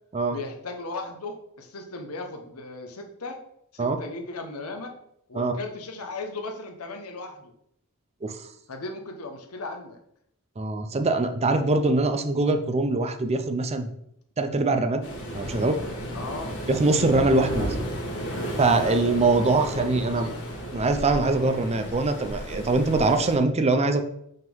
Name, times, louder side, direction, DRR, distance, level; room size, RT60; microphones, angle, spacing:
voice 1, 0.3-3.4 3.7-4.9 5.3-7.5 8.7-10.0 16.1-16.5 18.8-20.3, left 2 dB, 85° left, 4 dB, 1.0 m, -37 dB
voice 2, 10.6-13.9 14.4-15.0 15.3-15.8 16.7-17.8 18.6-20.3 20.7-24.0, right 3 dB, 30° right, 7 dB, 0.5 m, -23 dB
Waves surf, 15.0-23.4, equal, 60° left, 1.6 m, -33 dB
5.5 x 3.8 x 5.3 m, 0.75 s
head